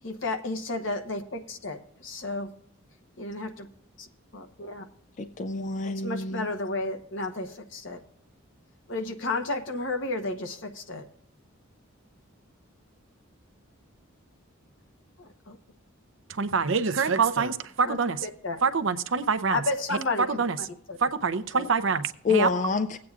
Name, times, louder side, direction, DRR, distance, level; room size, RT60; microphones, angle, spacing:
voice 1, 0.0-2.5 3.2-3.7 4.0-4.1 4.3-4.8 6.0-8.0 8.9-11.0 15.2-15.6 17.8-18.6 19.5-20.4 20.9-21.0 21.5-21.7, left 2 dB, 60° left, 1.0 m, -32 dB
voice 2, 5.2-6.5 22.2-23.0, left 4 dB, 35° left, 0.3 m, -27 dB
voice 3, 16.3-18.2 18.6-19.6 20.3-20.6 21.0-22.5, right 5 dB, 65° right, 0.6 m, -25 dB
20.0 x 8.6 x 2.4 m
head